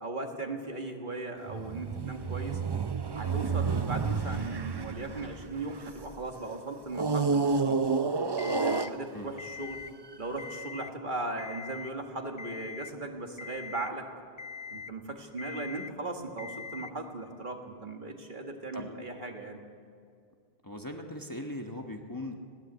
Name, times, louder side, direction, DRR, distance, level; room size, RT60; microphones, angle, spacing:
voice 1, 0.0-2.6 3.1-7.8 8.4-9.8 10.2-14.1 14.7-19.6, right 2 dB, 50° right, 3 dB, 1.9 m, -38 dB
sound 1, 1.5-6.2 6.9-9.4 10.1-10.3, right 4 dB, 30° right, 0.5 m, -30 dB
Alarm, 8.4-8.9 9.4-9.9 10.3-10.9 11.4-11.9 12.4-12.9 13.4-13.9 14.4-14.9 15.4-15.9 16.4-16.9, left 6 dB, 40° left, 0.8 m, -42 dB
voice 2, 20.6-22.4, left 1 dB, 20° left, 3 dB, 1.2 m, -39 dB
21.0 x 16.5 x 8.1 m, 2.3 s
omnidirectional pair, 1.1 m